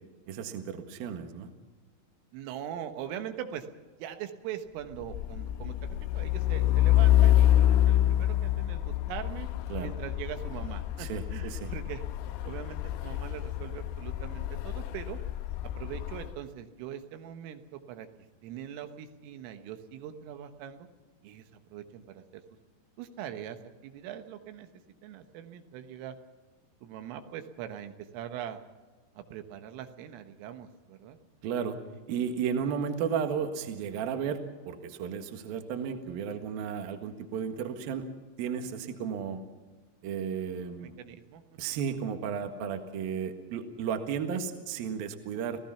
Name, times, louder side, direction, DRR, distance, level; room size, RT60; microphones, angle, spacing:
voice 1, 0.3-1.5 9.7-9.9 11.0-11.7 31.4-31.8 32.1-38.1 38.4-39.4 40.0-41.0 41.6-45.6, right 7 dB, 60° right, 6 dB, 2.9 m, -33 dB
voice 2, 2.3-3.7 4.0-9.5 9.8-12.0 12.4-15.2 15.8-18.1 18.4-20.9 21.2-22.4 23.0-24.7 25.0-26.2 26.8-28.6 29.2-31.2 41.0-41.4, right 10 dB, 85° right, 8 dB, 3.8 m, -42 dB
Truck, 5.0-16.4, left 13 dB, 80° left, 2.4 m, -27 dB
29.5 x 16.5 x 5.8 m, 1.3 s
omnidirectional pair, 5.8 m